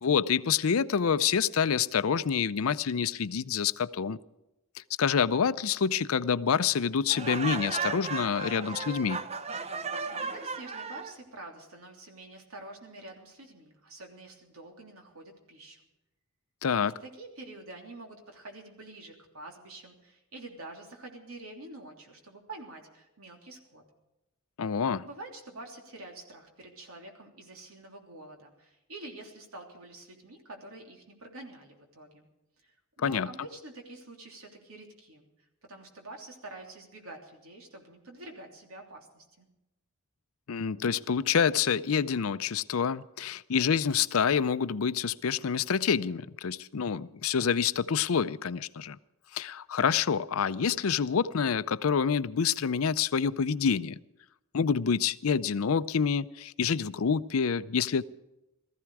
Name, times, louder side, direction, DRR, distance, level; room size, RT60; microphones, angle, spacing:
voice 1, 0.0-4.2 5.0-9.2 16.6-16.9 24.6-25.1 33.0-33.3 40.5-49.0 49.3-54.0 54.5-58.0, left 6 dB, 75° left, 0.5 m, -27 dB
Laughter, 7.1-11.1, right 5 dB, 30° right, 0.8 m, -35 dB
voice 2, 9.8-15.8 16.8-23.8 25.0-32.3 32.6-35.3 35.7-39.5, right 2 dB, 80° right, 3.2 m, -47 dB
19.0 x 14.5 x 4.8 m
head